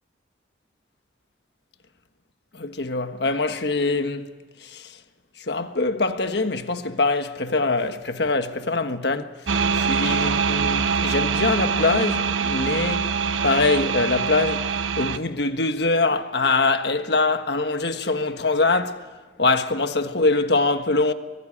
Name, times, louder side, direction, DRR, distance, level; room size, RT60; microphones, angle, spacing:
voice 1, 2.5-4.3 4.6-5.0 5.4-9.3 9.7-13.2 13.4-14.7 15.0-19.1 19.4-21.1, left 3 dB, 60° left, 1.4 m, -23 dB
sound 1, 9.5-15.2, right 5 dB, 85° right, 1.0 m, -24 dB
24.0 x 24.0 x 9.9 m
head